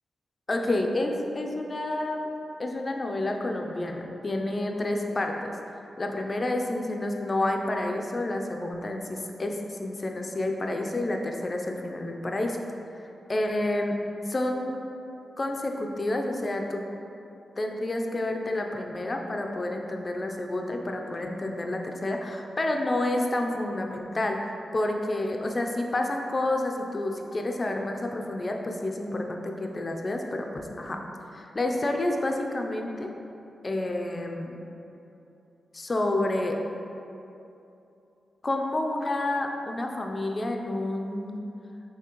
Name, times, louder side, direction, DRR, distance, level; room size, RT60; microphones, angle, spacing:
voice 1, 0.5-2.3 2.6-5.5 6.0-12.6 13.3-14.0 14.3-14.8 15.4-16.8 17.6-31.0 31.3-33.1 33.6-34.6 35.7-36.6 38.4-41.3, left 1 dB, 40° left, 2 dB, 0.5 m, -29 dB
5.9 x 2.8 x 3.0 m, 2.8 s
cardioid pair, 50°, 0 cm